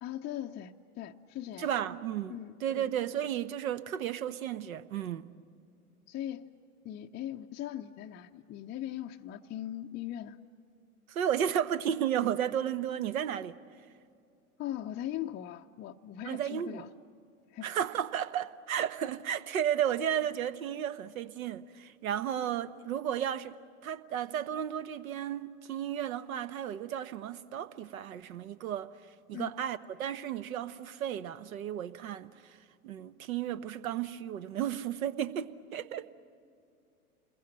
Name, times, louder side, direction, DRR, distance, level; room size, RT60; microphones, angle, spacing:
voice 1, 0.0-1.7 2.3-2.9 6.1-6.5 6.8-10.4 14.6-16.9 17.5-17.7 29.3-29.5, left 12 dB, 25° left, 0.6 m, -40 dB
voice 2, 1.6-5.3 11.1-13.6 16.3-16.8 17.6-23.6 23.8-28.9 29.3-32.6 32.8-36.1, right 10 dB, 65° right, 1.2 m, -33 dB
28.5 x 21.5 x 7.6 m
hypercardioid pair, 95°, 44 cm